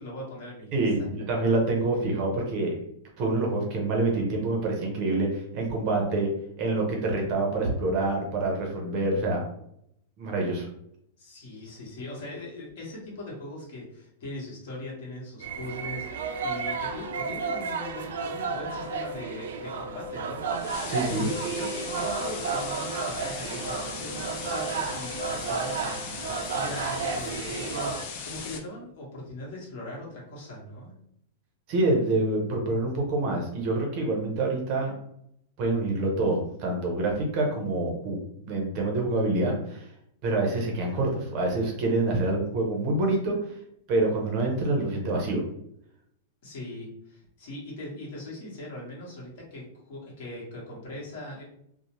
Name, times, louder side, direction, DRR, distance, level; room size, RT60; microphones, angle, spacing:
voice 1, 0.0-0.9 11.2-20.6 20.9-21.3 21.6-30.9 46.4-51.4, left 1 dB, 50° left, -4 dB, 1.1 m, -40 dB
voice 2, 0.7-2.7 3.2-6.3 6.6-9.4 10.2-10.7 20.9-21.3 31.7-34.9 35.6-38.2 38.4-39.9 40.2-43.3 43.9-45.4, right 2 dB, 30° right, 0 dB, 0.6 m, -26 dB
sound 1, 15.4-28.0, right 4 dB, 85° right, 0.4 m, -32 dB
sound 2, 20.5-28.6, left 5 dB, 35° left, 0.4 m, -38 dB
2.7 x 2.0 x 2.9 m, 0.73 s
supercardioid pair, 170°, 0 cm